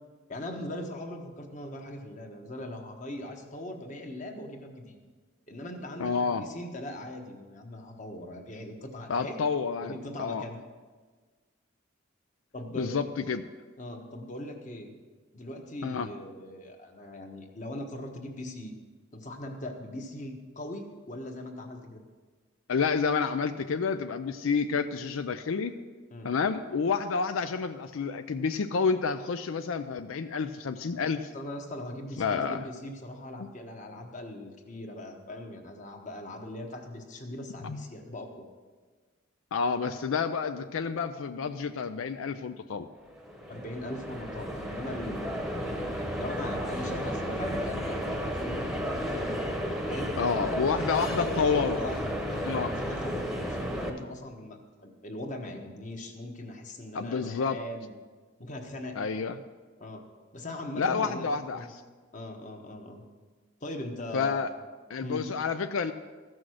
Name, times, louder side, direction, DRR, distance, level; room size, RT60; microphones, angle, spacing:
voice 1, 0.3-5.0 5.5-9.4 9.8-10.6 12.5-13.0 13.8-14.9 15.3-18.8 19.1-22.0 26.1-26.3 31.3-38.5 43.5-49.3 49.9-52.0 52.3-57.9 58.4-59.0 59.8-60.0 60.3-61.7 62.1-63.0 63.6-64.4 65.0-65.2, left 1 dB, 40° left, 3 dB, 1.2 m, -40 dB
voice 2, 6.0-6.5 9.1-10.4 12.8-13.5 15.8-16.1 22.7-25.8 26.2-31.3 32.2-32.7 37.6-37.8 39.5-42.9 50.2-51.8 52.4-52.7 56.9-57.6 58.9-59.4 60.8-61.8 64.1-64.5 64.9-65.9, left 5 dB, 90° left, 9 dB, 0.5 m, -29 dB
sound 1, 43.0-53.9, equal, ahead, 1.0 m, -33 dB
14.5 x 6.3 x 6.3 m, 1.4 s
head